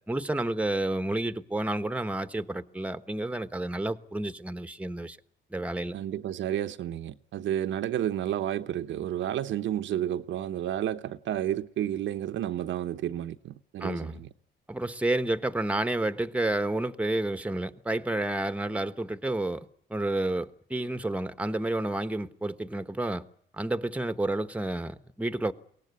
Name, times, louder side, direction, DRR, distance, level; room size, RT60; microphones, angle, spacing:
voice 1, 0.1-5.2 5.5-6.0 13.8-14.1 14.7-23.2 23.5-25.5, right 2 dB, 5° right, 1.2 m, -30 dB
voice 2, 5.9-14.3, right 11 dB, 75° right, 1.0 m, -31 dB
23.0 x 18.0 x 9.6 m
cardioid pair, 90°, 20 cm